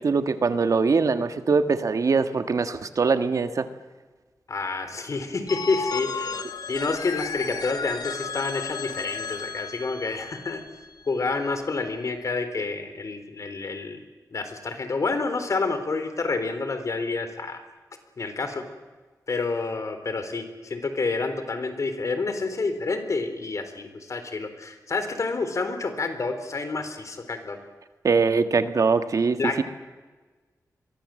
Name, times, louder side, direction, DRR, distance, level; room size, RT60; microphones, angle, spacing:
voice 1, 0.0-3.7 28.0-29.6, right 4 dB, 60° right, 9 dB, 1.6 m, -22 dB
voice 2, 4.5-6.4 6.7-10.6 11.1-14.0 14.3-17.6 18.2-18.6 19.3-27.6 29.4-29.6, left 3 dB, 55° left, 8 dB, 3.9 m, -28 dB
Telephone, 5.5-11.2, left 5 dB, 90° left, 1.6 m, -34 dB
29.0 x 23.0 x 7.7 m, 1.3 s
wide cardioid pair, 130°, 6 cm